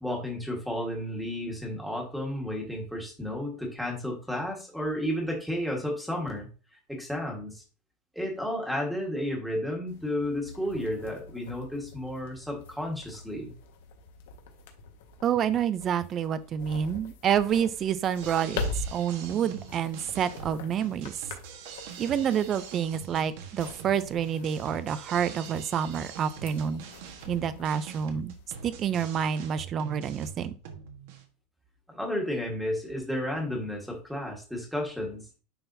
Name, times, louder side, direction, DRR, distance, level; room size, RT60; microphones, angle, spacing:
voice 1, 0.0-6.5 6.9-7.6 8.1-13.5 31.9-35.3, left 1 dB, ahead, -1 dB, 1.5 m, -32 dB
sound 1, 9.9-29.0, left 3 dB, 80° left, 1.4 m, -43 dB
voice 2, 15.2-21.1 22.0-26.8 27.3-28.3 28.6-30.5, right 8 dB, 25° right, 14 dB, 0.4 m, -28 dB
sound 2, 18.1-31.2, right 7 dB, 60° right, 1.3 m, -44 dB
9.9 x 3.9 x 2.7 m, 0.35 s
supercardioid pair, 170°, 0 cm